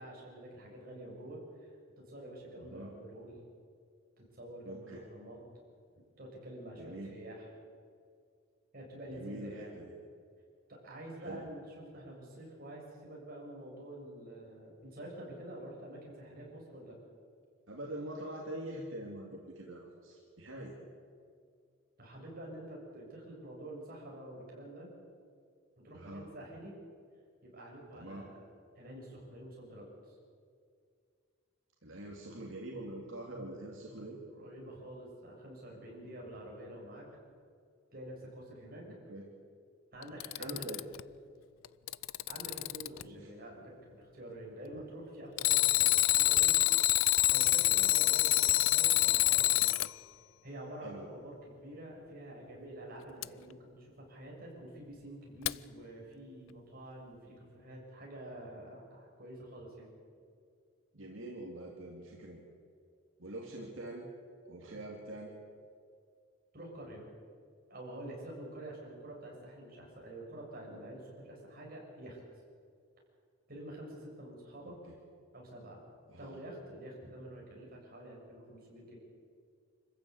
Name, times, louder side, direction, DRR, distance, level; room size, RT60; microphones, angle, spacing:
voice 1, 0.0-3.4 4.2-5.4 6.2-7.5 8.7-9.8 10.7-17.0 22.0-24.9 25.8-26.7 27.4-28.4 28.7-30.2 34.3-37.1 37.9-38.9 39.9-40.6 42.3-46.5 47.3-49.8 50.4-59.9 66.5-67.1 67.7-72.2 73.5-74.8 75.3-75.8 76.2-79.0, right 1 dB, 50° right, -2 dB, 7.1 m, -48 dB
voice 2, 2.6-2.9 4.6-5.0 6.8-7.1 9.1-9.9 11.2-11.5 17.7-20.7 25.9-26.3 27.9-28.3 31.8-34.2 38.8-39.2 40.4-40.8 43.0-43.3 44.7-44.8 47.6-47.9 50.8-51.1 60.9-62.4 63.2-64.1 64.4-65.3 74.6-75.0 76.1-76.4, right 1 dB, 75° right, -2 dB, 2.9 m, -44 dB
Alarm, 40.0-41.0 41.6-43.0 45.4-49.9 53.2-53.3 55.5-55.6, left 15 dB, 85° left, 0.5 m, -26 dB
26.0 x 15.0 x 8.5 m, 2.2 s
head